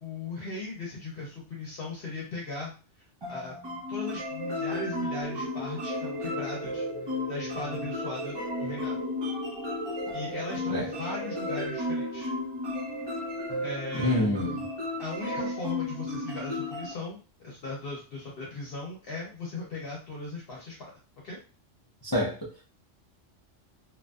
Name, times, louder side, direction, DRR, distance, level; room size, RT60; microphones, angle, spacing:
voice 1, 0.0-2.7 3.3-3.5 3.9-9.0 10.1-12.3 13.6-14.3 15.0-20.9 21.2-21.4, left 3 dB, 60° left, -3 dB, 0.9 m, -38 dB
sound 1, 3.2-16.9, left 1 dB, 30° right, 0.5 m, -34 dB
sound 2, 5.2-11.7, equal, 70° right, 1.2 m, -41 dB
voice 2, 13.9-14.6 22.0-22.6, left 1 dB, 40° left, -4 dB, 0.3 m, -28 dB
2.6 x 2.5 x 2.2 m, 0.35 s
omnidirectional pair, 1.2 m